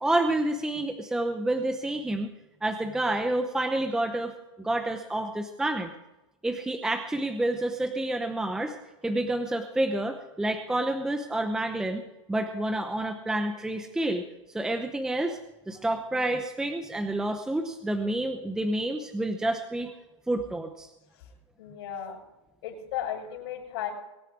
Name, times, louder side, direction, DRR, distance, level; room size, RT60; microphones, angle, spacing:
voice 1, 0.0-2.3 2.6-5.9 6.4-8.7 9.0-12.0 12.3-14.2 14.5-15.4 15.7-19.9 20.3-20.9, right 1 dB, 5° right, 6 dB, 0.8 m, -29 dB
voice 2, 21.6-22.2 22.6-23.9, left 10 dB, 50° left, -6 dB, 6.3 m, -35 dB
23.0 x 9.0 x 4.6 m, 0.99 s
hypercardioid pair, 150°, 16 cm